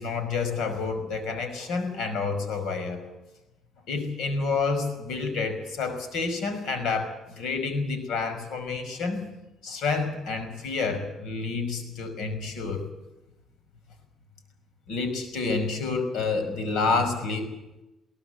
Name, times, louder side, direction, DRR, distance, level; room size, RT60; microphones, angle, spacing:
voice 1, 0.0-3.0 3.9-9.3 9.6-12.8 14.9-17.5, left 4 dB, 80° left, 8 dB, 5.6 m, -29 dB
22.5 x 17.5 x 8.2 m, 0.97 s
cardioid pair, 150°, 0 cm